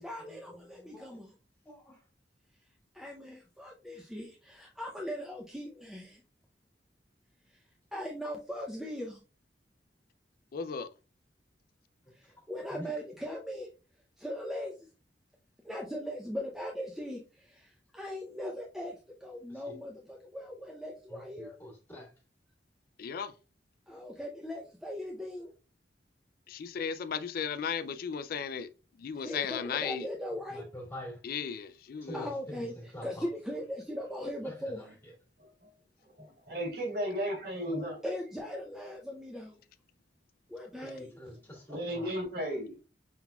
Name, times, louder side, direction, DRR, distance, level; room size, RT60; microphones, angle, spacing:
voice 1, 0.0-1.3 2.9-6.2 7.5-7.6 7.9-9.2 12.1-13.7 14.2-14.9 15.6-21.6 23.9-25.5 29.1-30.6 32.1-35.0 38.0-39.6 40.5-41.2, equal, ahead, 0.6 m, -39 dB
voice 2, 0.7-1.1 1.7-2.0 12.7-12.9 21.1-22.1 30.5-31.2 32.0-32.6 32.9-33.2 40.8-42.1, equal, 15° left, 1.8 m, -46 dB
voice 3, 10.5-10.9 23.0-23.3 26.5-28.7 29.0-30.0 31.2-32.3, left 7 dB, 55° left, 0.3 m, -35 dB
voice 4, 36.2-38.0 41.7-42.7, equal, 60° right, 2.5 m, -34 dB
5.6 x 3.9 x 2.2 m
head